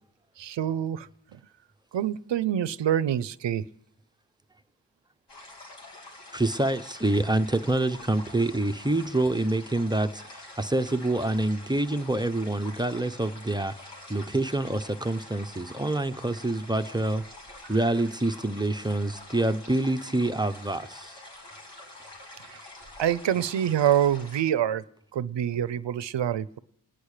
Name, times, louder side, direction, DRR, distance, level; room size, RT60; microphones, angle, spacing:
voice 1, 0.4-1.4 1.9-3.6 17.6-17.7 22.5-22.6 23.0-24.8 25.1-26.6, right 10 dB, 75° right, 0.7 m, -26 dB
sound 1, 5.3-24.4, left 2 dB, 70° left, 3.5 m, -46 dB
voice 2, 6.3-17.2 17.7-21.2, right 2 dB, 10° right, 0.7 m, -27 dB
29.0 x 10.0 x 4.9 m
wide cardioid pair, 80°, 44 cm